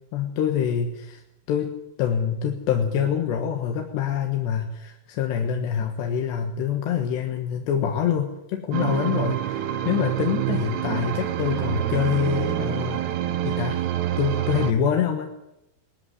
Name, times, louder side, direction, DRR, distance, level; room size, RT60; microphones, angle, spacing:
voice 1, 0.1-1.2 1.5-13.0 13.4-13.8 14.2-15.3, left 8 dB, 85° left, 3 dB, 3.7 m, -25 dB
sound 1, 8.7-14.7, right 12 dB, 80° right, 3.1 m, -26 dB
19.5 x 14.0 x 9.8 m, 0.86 s
omnidirectional pair, 4.8 m